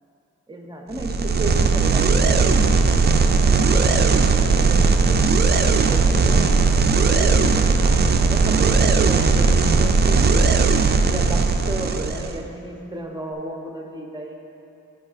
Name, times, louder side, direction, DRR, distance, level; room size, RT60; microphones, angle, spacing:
voice 1, 0.5-2.7 3.3-7.5 8.2-10.5 11.1-14.4, right 1 dB, 15° right, 1 dB, 0.8 m, -33 dB
sound 1, 0.9-12.4, right 4 dB, 35° right, 0.4 m, -18 dB
11.0 x 5.2 x 2.5 m, 2.7 s
cardioid pair, 85°, 32 cm